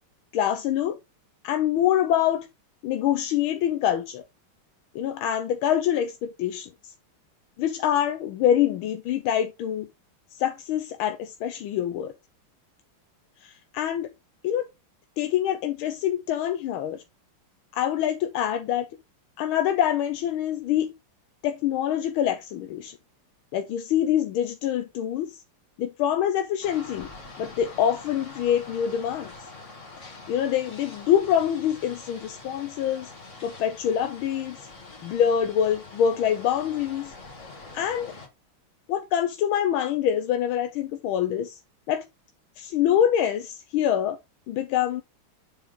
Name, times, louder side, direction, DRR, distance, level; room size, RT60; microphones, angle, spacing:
voice 1, 0.3-1.0 1.4-2.5 2.8-4.2 4.9-6.9 7.6-9.9 10.3-12.1 13.4-14.1 14.4-14.7 15.2-17.0 17.7-18.9 19.4-20.9 21.4-22.9 23.5-25.4 25.8-27.1 27.4-29.3 30.3-33.1 33.4-34.6 35.0-37.1 37.7-38.1 38.9-41.6 41.9-42.0 42.6-44.2 44.5-45.0, left 10 dB, 75° left, 1.4 m, -25 dB
sound 1, 26.6-38.3, left 3 dB, 35° left, 2.1 m, -44 dB
7.0 x 5.2 x 3.7 m
omnidirectional pair, 2.4 m